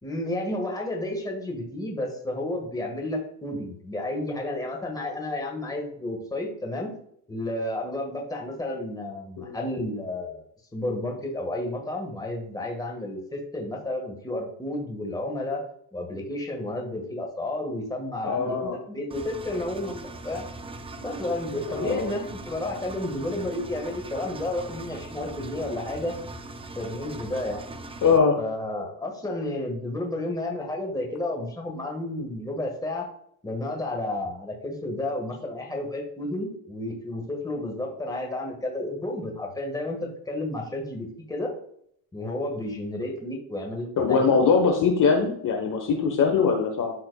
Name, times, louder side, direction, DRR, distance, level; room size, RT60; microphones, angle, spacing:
voice 1, 0.0-6.9 7.3-10.5 10.7-15.6 15.9-20.4 21.0-26.1 26.7-27.6 28.4-33.1 33.4-41.5 42.1-44.4, left 1 dB, 5° left, 1 dB, 1.6 m, -31 dB
voice 2, 18.2-18.8 21.7-22.1 28.0-28.4 44.0-46.9, left 5 dB, 40° left, 3 dB, 1.2 m, -22 dB
Engine, 19.1-28.2, right 2 dB, 10° right, 0.5 m, -40 dB
12.5 x 4.2 x 2.3 m, 0.67 s
cardioid pair, 115°, 50 cm